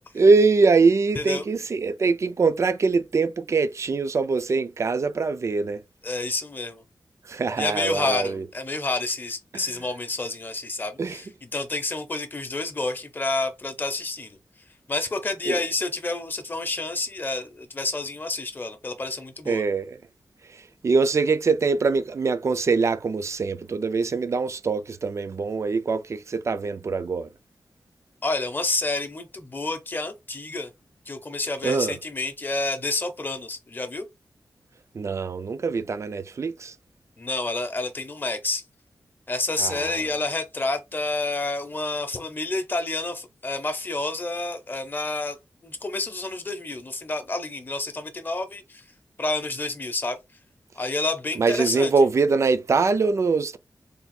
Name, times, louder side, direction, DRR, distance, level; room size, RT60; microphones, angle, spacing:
voice 1, 0.2-5.8 7.2-8.4 11.0-11.2 15.5-15.6 19.5-20.0 20.5-27.3 31.6-32.0 34.9-36.7 39.6-40.0 51.4-53.6, right 4 dB, 40° right, 0.4 m, -23 dB
voice 2, 6.0-6.8 7.6-11.3 11.5-14.4 14.9-19.6 28.2-30.7 31.1-34.1 37.2-38.6 39.3-45.4 45.6-48.8 49.2-50.2 50.8-51.9, left 2 dB, 30° left, 0.7 m, -29 dB
3.4 x 2.4 x 4.2 m
wide cardioid pair, 165°, 7 cm